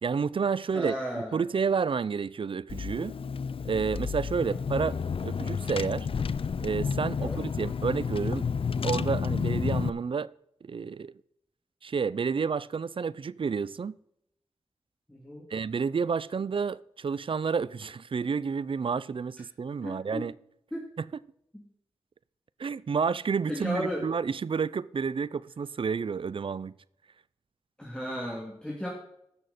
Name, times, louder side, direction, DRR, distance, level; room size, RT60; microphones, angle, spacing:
voice 1, 0.0-3.1 3.6-6.1 6.6-8.5 8.8-10.3 10.6-11.1 11.8-13.9 15.5-20.3 22.6-26.7, right 5 dB, 55° right, 0.4 m, -30 dB
voice 2, 0.7-1.4 4.4-4.6 7.1-7.4 15.1-15.5 19.8-20.3 20.7-20.9 21.5-21.6 23.5-24.1 27.8-28.9, equal, 10° left, 2.6 m, -35 dB
Car / Engine, 2.7-9.9, left 6 dB, 55° left, 0.4 m, -31 dB
15.5 x 6.4 x 4.2 m
cardioid pair, 45°, 11 cm